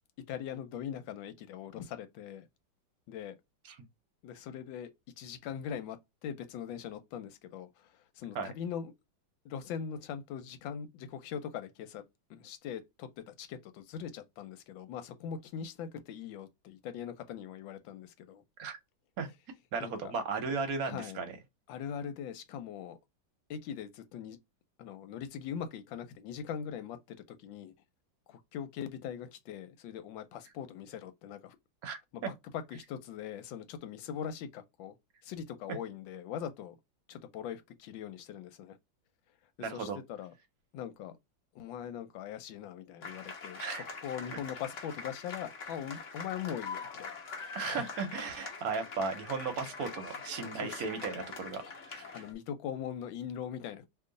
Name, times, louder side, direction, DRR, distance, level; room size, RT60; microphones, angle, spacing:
voice 1, 0.3-2.5 3.1-3.4 4.2-4.9 5.2-6.0 6.2-8.9 9.4-12.0 12.3-18.4 19.8-20.1 20.8-21.2 21.7-23.0 23.5-24.4 24.8-27.7 28.3-31.6 32.1-34.9 35.2-36.8 37.1-38.8 39.6-40.3 40.7-41.2 41.5-47.1 47.4-47.8 50.6-50.8 52.1-53.9, left 8 dB, 90° left, 1.4 m, -41 dB
voice 2, 19.7-21.4 31.8-32.3 39.6-40.0 43.6-43.9 47.5-51.6 51.9-52.2, right 4 dB, 65° right, 0.9 m, -36 dB
sound 1, 43.0-52.3, left 4 dB, 50° left, 1.1 m, -44 dB
3.0 x 2.4 x 3.7 m
omnidirectional pair, 2.1 m